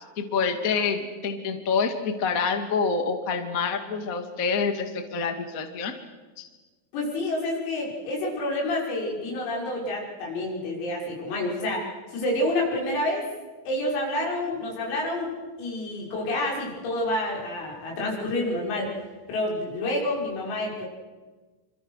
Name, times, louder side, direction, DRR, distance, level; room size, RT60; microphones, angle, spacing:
voice 1, 0.1-5.9 6.4-6.5, left 5 dB, 70° left, 6 dB, 0.8 m, -27 dB
voice 2, 6.9-13.3 13.7-15.3 15.6-18.9 19.3-20.9, left 1 dB, 90° left, -2 dB, 8.8 m, -28 dB
26.5 x 26.0 x 6.5 m, 1.3 s
omnidirectional pair, 5.9 m